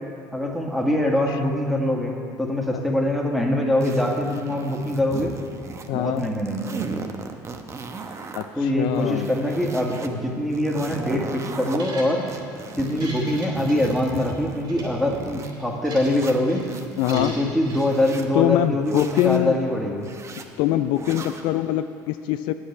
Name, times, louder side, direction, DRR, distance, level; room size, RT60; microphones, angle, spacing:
voice 1, 0.3-5.3 5.9-7.0 8.6-12.2 12.8-16.6 17.1-20.1, left 1 dB, ahead, 0 dB, 1.9 m, -23 dB
sound 1, 3.8-5.9 6.2-8.4 8.9-10.1 10.5-11.8 12.3-15.5 16.0-17.2 17.7-18.3 18.8-19.4 20.0-20.5 20.9-21.5, right 4 dB, 35° right, 0.9 m, -37 dB
voice 2, 5.9-6.3 8.3-9.4 17.0-17.4 18.3-19.6 20.6-22.5, left 14 dB, 75° left, 10 dB, 0.4 m, -23 dB
sound 2, 11.7-12.4 12.8-14.3 14.6-14.9 15.4-16.2 16.5-16.7 17.1-17.8, right 1 dB, 60° right, 3.0 m, -40 dB
8.4 x 8.0 x 8.6 m, 2.4 s
supercardioid pair, 80°, 8 cm